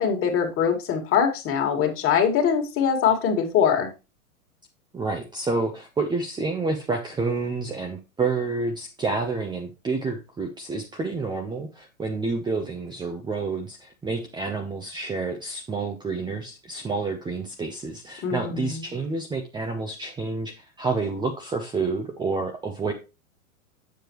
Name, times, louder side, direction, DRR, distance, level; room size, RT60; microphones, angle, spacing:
voice 1, 0.0-3.9 18.2-19.0, left 7 dB, 30° left, 3 dB, 2.1 m, -23 dB
voice 2, 4.9-22.9, right 3 dB, 10° right, 3 dB, 0.8 m, -29 dB
7.7 x 7.1 x 3.1 m, 0.29 s
hypercardioid pair, 115°, 43 cm